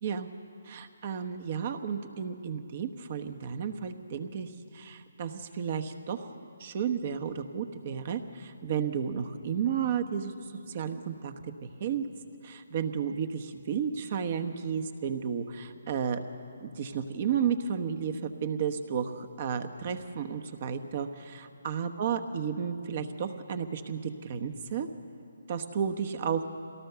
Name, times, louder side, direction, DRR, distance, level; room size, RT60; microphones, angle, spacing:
voice 1, 0.7-4.5 4.7-10.3 10.7-11.3 11.8-12.1 12.4-16.2 16.6-24.9 25.5-26.4, right 7 dB, 40° right, 8 dB, 1.1 m, -32 dB
23.0 x 18.0 x 6.9 m, 2.5 s
hypercardioid pair, 160°, 0 cm